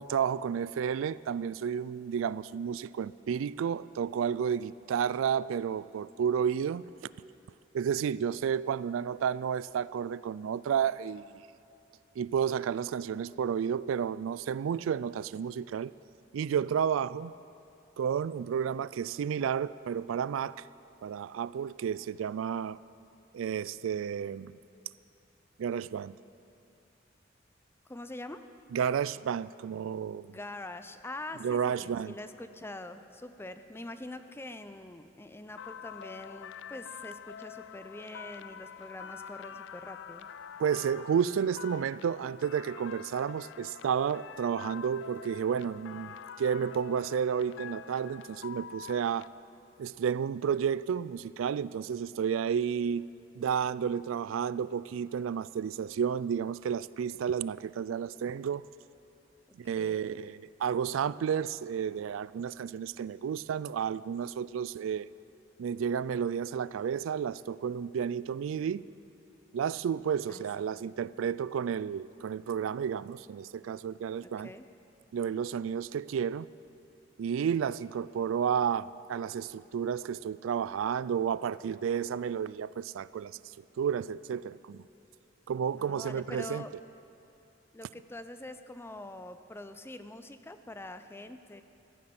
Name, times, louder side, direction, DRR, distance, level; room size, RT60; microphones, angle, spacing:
voice 1, 0.0-6.8 7.7-11.4 12.2-15.9 16.3-17.3 18.0-20.6 21.0-22.8 23.3-24.6 25.6-26.2 28.7-30.3 31.4-32.1 40.6-49.3 49.8-53.1 53.4-58.7 59.6-65.1 65.6-68.8 69.5-74.5 75.1-76.5 77.2-83.4 83.8-84.8 85.5-86.7, right 7 dB, 90° right, 19 dB, 0.3 m, -31 dB
voice 2, 27.9-28.4 30.1-40.3 59.7-60.1 70.3-70.7 74.2-74.6 85.8-86.7 87.7-91.6, left 1 dB, 10° left, 9 dB, 0.5 m, -44 dB
sound 1, 35.6-49.3, left 8 dB, 65° left, 0.4 m, -46 dB
14.5 x 9.9 x 7.8 m, 2.6 s
head